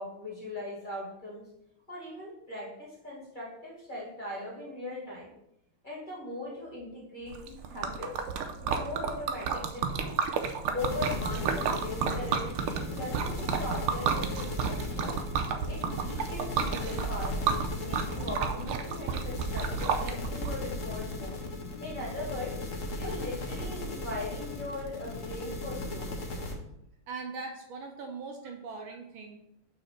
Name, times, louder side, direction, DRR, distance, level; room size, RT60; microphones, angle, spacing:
voice 1, 0.0-1.5 1.9-5.3 5.8-8.2 8.6-10.2 10.7-15.2 15.7-21.4 21.8-22.7 23.0-26.2, left 2 dB, 20° left, -5 dB, 1.9 m, -40 dB
Liquid, 7.3-20.5, right 6 dB, 85° right, 1.6 m, -31 dB
sound 1, 10.8-26.5, left 2 dB, 50° left, 1.0 m, -37 dB
voice 2, 27.1-29.4, right 4 dB, 70° right, 3 dB, 1.6 m, -40 dB
5.6 x 4.0 x 5.9 m, 0.80 s
omnidirectional pair, 2.4 m